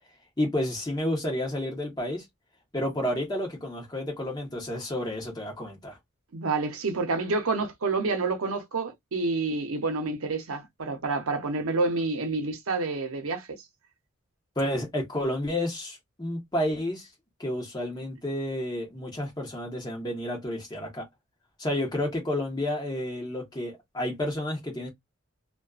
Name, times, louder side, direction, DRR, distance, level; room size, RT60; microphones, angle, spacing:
voice 1, 0.4-2.2 2.7-6.0 14.6-17.1 17.4-21.1 21.6-24.9, left 1 dB, 20° left, 0.9 m, -30 dB
voice 2, 6.3-13.6, right 3 dB, 85° right, 0.7 m, -28 dB
2.4 x 2.3 x 2.3 m
head